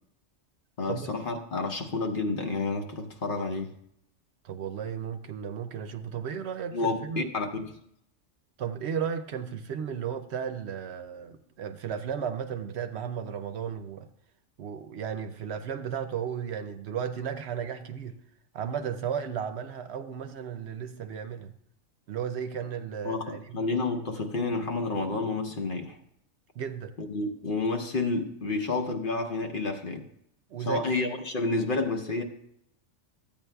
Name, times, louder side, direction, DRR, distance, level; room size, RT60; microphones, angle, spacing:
voice 1, 0.8-3.7 6.7-7.7 23.0-26.0 27.0-30.1 30.6-32.2, left 3 dB, 50° left, 4 dB, 0.9 m, -30 dB
voice 2, 4.4-7.3 8.6-14.1 14.6-18.2 18.5-21.5 22.1-23.6 26.6-26.9 30.5-30.8, right 7 dB, 65° right, 8 dB, 0.8 m, -34 dB
14.0 x 8.8 x 2.2 m, 0.74 s
omnidirectional pair, 1.3 m